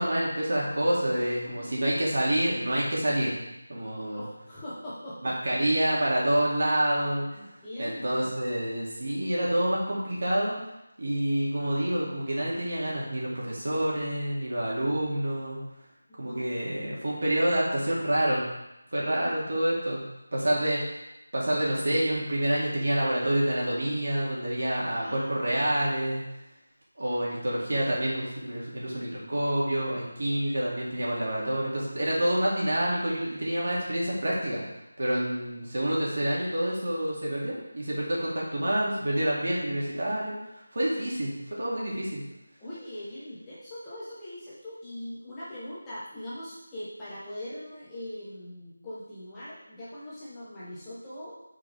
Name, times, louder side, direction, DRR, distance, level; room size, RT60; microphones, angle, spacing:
voice 1, 0.0-3.4 3.7-4.2 5.2-7.3 7.8-10.6 11.0-15.6 16.2-18.4 18.9-20.0 20.3-20.8 21.3-26.2 27.0-34.6 35.0-40.4 40.7-42.2, right 1 dB, 60° right, -5 dB, 2.5 m, -27 dB
voice 2, 1.2-1.8 4.1-5.4 7.3-8.3 16.1-16.7 19.0-19.3 24.8-25.4 30.4-30.5 42.6-51.4, left 1 dB, 10° left, -11 dB, 1.1 m, -41 dB
6.9 x 5.0 x 3.4 m, 0.90 s
figure-of-eight pair, 175°, 0 cm